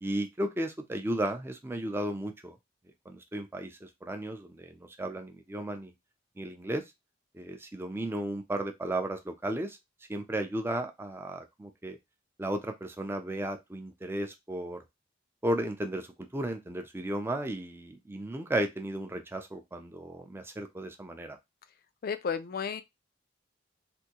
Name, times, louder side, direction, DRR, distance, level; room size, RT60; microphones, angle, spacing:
voice 1, 0.0-2.6 3.1-5.9 6.4-6.8 7.3-9.8 10.1-12.0 12.4-14.8 15.4-16.1 16.3-21.4, right 1 dB, 10° right, 0.5 m, -34 dB
voice 2, 22.0-22.8, left 6 dB, 50° left, 0.4 m, -32 dB
3.5 x 2.6 x 2.8 m
head